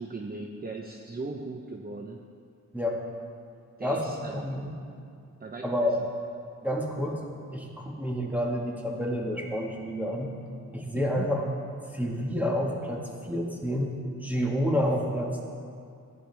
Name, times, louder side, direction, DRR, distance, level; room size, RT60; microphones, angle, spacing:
voice 1, 0.0-2.2 3.8-4.5 5.4-5.9 10.9-11.3, right 3 dB, 30° right, 2 dB, 0.7 m, -38 dB
voice 2, 3.8-4.7 5.6-6.0 6.6-7.2 7.5-10.3 10.7-11.5 11.9-14.0 14.2-15.5, equal, 5° right, -1 dB, 1.7 m, -29 dB
15.0 x 9.9 x 3.4 m, 2.4 s
wide cardioid pair, 80°, 31 cm